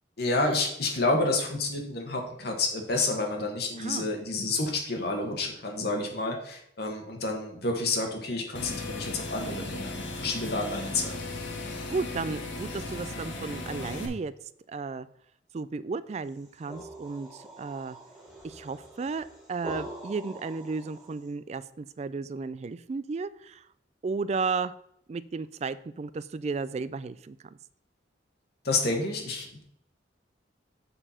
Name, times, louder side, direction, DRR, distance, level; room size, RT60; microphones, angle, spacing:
voice 1, 0.2-11.2 28.6-29.6, left 2 dB, 55° left, 2 dB, 1.4 m, -29 dB
voice 2, 3.8-4.1 11.9-14.3 14.7-15.1 15.5-18.0 18.4-23.7 24.0-24.7 25.1-27.4, right 4 dB, 35° right, 15 dB, 0.3 m, -34 dB
sound 1, 8.5-14.1, left 2 dB, 85° left, 1.3 m, -36 dB
sound 2, 16.3-21.3, right 1 dB, 5° right, 1.9 m, -44 dB
6.8 x 4.5 x 5.6 m, 0.70 s
head